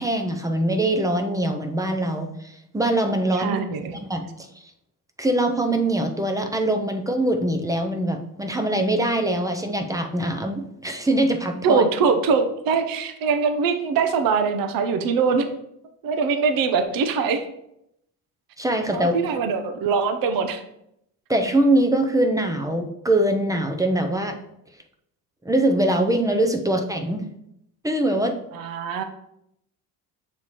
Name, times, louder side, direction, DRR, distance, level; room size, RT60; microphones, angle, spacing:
voice 1, 0.0-3.6 3.9-4.5 5.2-11.9 18.6-19.2 21.3-24.4 25.4-27.2 27.8-28.4, right 1 dB, 10° right, 5 dB, 0.5 m, -23 dB
voice 2, 3.3-3.9 11.6-15.5 16.0-17.5 18.9-20.6 28.5-29.0, right 5 dB, 65° right, 8 dB, 0.7 m, -22 dB
7.2 x 3.2 x 4.1 m, 0.78 s
cardioid pair, 135°, 38 cm